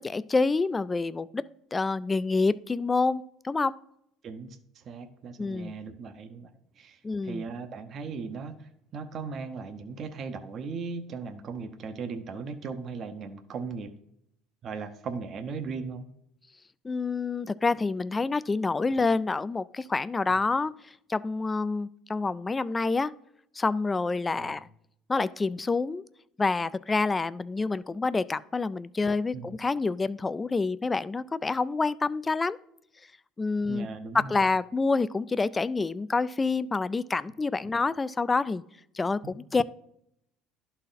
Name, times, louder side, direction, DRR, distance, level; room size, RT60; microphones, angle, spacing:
voice 1, 0.0-3.8 5.4-5.7 7.0-7.4 16.8-20.8 21.1-23.1 23.6-24.7 25.1-26.0 26.4-32.6 33.4-33.9 34.1-38.6 38.9-39.6, left 3 dB, 20° left, 17 dB, 0.3 m, -27 dB
voice 2, 4.2-6.5 6.8-13.9 14.6-16.1 24.4-24.6 29.0-29.5 33.7-34.4, right 5 dB, 45° right, 8 dB, 0.8 m, -38 dB
11.5 x 4.2 x 3.9 m, 0.74 s
supercardioid pair, 95°, 0 cm